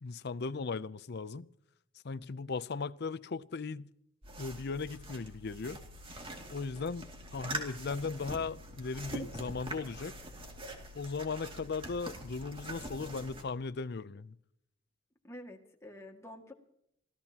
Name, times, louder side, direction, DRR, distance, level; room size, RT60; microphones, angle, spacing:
voice 1, 0.0-1.5 2.0-3.9 4.4-5.8 6.5-10.2 10.9-14.4, left 4 dB, 55° left, 0.6 m, -37 dB
sound 1, 4.2-13.4, right 1 dB, 30° right, 2.5 m, -44 dB
voice 2, 15.2-16.5, left 1 dB, 15° left, 2.1 m, -48 dB
26.0 x 16.0 x 2.9 m
head